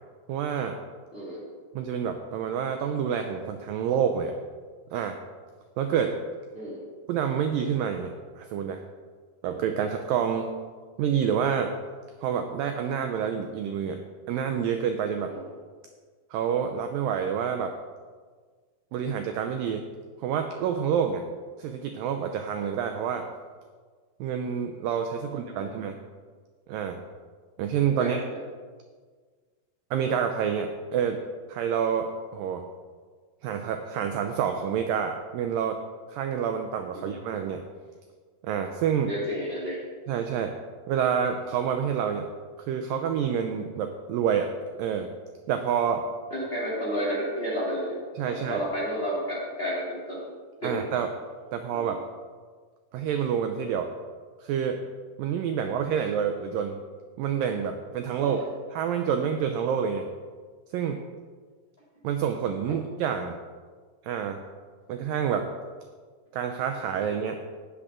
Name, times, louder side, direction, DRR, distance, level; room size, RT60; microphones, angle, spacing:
voice 1, 0.3-0.8 1.8-4.3 4.9-5.2 5.8-6.1 7.1-8.8 9.4-10.5 11.0-11.7 12.2-14.0 14.3-15.3 16.3-17.7 18.9-19.9 20.2-21.2 21.6-23.3 24.2-26.0 26.7-27.0 27.6-28.2 29.9-31.2 31.5-32.6 33.4-35.8 36.1-37.6 38.4-39.1 40.1-40.5 40.9-42.3 42.7-44.5 44.8-45.1 45.5-46.0 48.2-48.6 50.6-51.1 51.5-52.0 52.9-53.9 54.4-54.8 55.2-56.8 57.2-58.4 58.7-60.1 60.7-61.0 62.0-63.4 64.0-64.4 64.9-65.5 66.3-67.4, right 8 dB, 80° right, 5 dB, 2.0 m, -28 dB
voice 2, 1.1-1.4 6.5-6.8 15.3-15.4 25.5-25.7 28.0-28.4 36.9-37.2 39.0-39.8 46.3-47.9 48.3-50.3 50.6-50.8 51.7-51.9 55.6-55.8 58.2-58.4 62.7-62.8, equal, 20° left, -7 dB, 2.2 m, -31 dB
18.0 x 7.1 x 3.7 m, 1.5 s
omnidirectional pair, 4.6 m